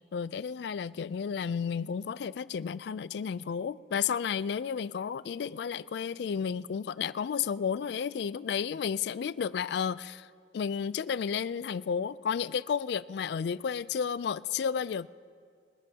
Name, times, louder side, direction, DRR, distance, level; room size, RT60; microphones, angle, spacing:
voice 1, 0.1-10.3 10.5-15.1, left 7 dB, 65° left, 0.3 m, -32 dB
29.5 x 14.0 x 2.8 m
head